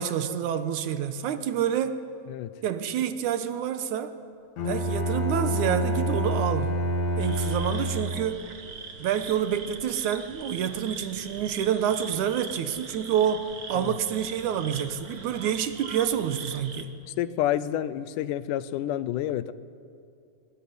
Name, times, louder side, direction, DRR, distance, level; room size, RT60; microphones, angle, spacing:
voice 1, 0.0-2.0 2.6-4.2 4.6-6.7 7.2-8.5 9.0-16.9, right 9 dB, 75° right, 10 dB, 2.4 m, -28 dB
Bowed string instrument, 4.6-8.5, equal, 65° left, 3.5 m, -27 dB
sound 1, 7.2-16.8, right 5 dB, 40° right, 1.3 m, -41 dB
voice 2, 17.2-19.5, left 12 dB, 85° left, 15 dB, 2.3 m, -29 dB
22.5 x 19.5 x 9.8 m, 2.5 s
omnidirectional pair, 3.6 m